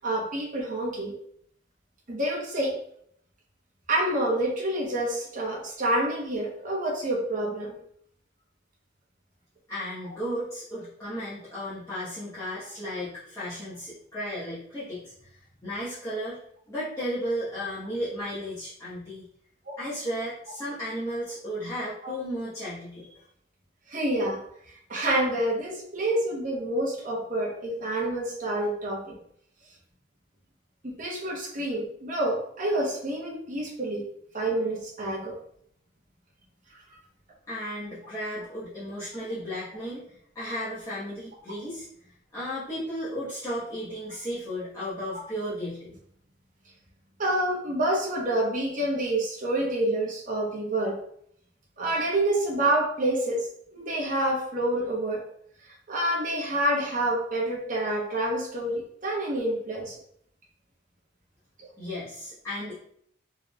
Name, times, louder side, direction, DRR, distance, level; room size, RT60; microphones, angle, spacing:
voice 1, 0.0-1.1 2.1-2.7 3.9-7.8 22.0-22.1 23.9-24.4 24.9-29.2 30.8-34.1 34.3-35.3 47.2-51.0 51.8-53.4 53.7-55.2 55.9-60.0, right 1 dB, 45° right, -3 dB, 1.1 m, -27 dB
voice 2, 9.7-16.4 16.7-19.2 19.8-23.2 37.5-40.0 40.3-41.9 42.3-45.9 61.8-62.8, equal, 15° left, -13 dB, 1.2 m, -34 dB
4.2 x 3.4 x 2.3 m, 0.67 s
head